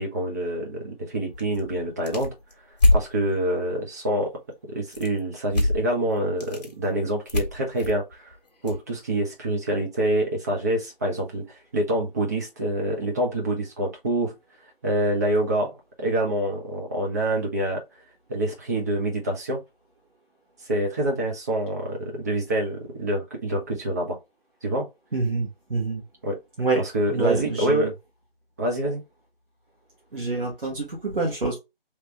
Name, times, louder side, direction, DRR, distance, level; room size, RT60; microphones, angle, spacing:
voice 1, 0.0-2.3 2.9-4.3 4.7-8.3 8.6-14.3 14.8-17.8 18.3-19.6 20.7-24.2 24.6-24.9 26.2-26.3 26.8-27.9 28.6-29.0, right 1 dB, 15° right, 0.8 m, -26 dB
sound 1, 1.3-3.1 4.9-5.2 5.5-5.9 6.2-6.7 7.3-8.8, left 2 dB, 45° left, 1.4 m, -24 dB
voice 2, 25.1-26.0 26.6-26.8 27.1-27.9 30.1-31.6, right 3 dB, 65° right, 1.5 m, -26 dB
3.3 x 3.2 x 3.2 m
figure-of-eight pair, 155°, 29 cm